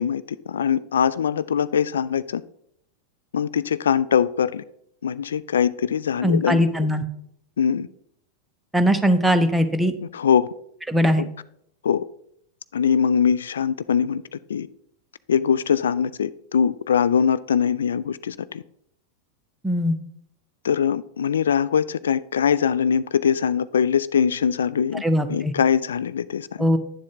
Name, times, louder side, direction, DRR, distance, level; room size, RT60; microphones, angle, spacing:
voice 1, 0.0-2.4 3.3-4.6 5.0-6.6 7.6-7.9 10.1-10.5 11.2-11.3 11.8-12.1 12.7-14.7 15.3-18.6 20.6-25.0 25.3-26.5, left 7 dB, 65° left, 16 dB, 0.3 m, -22 dB
voice 2, 6.2-7.0 8.7-9.9 10.9-11.3 19.6-20.0 25.0-25.5 26.6-26.8, equal, 5° right, 7 dB, 0.8 m, -20 dB
10.0 x 7.3 x 3.9 m, 0.73 s
figure-of-eight pair, 90°, 0 cm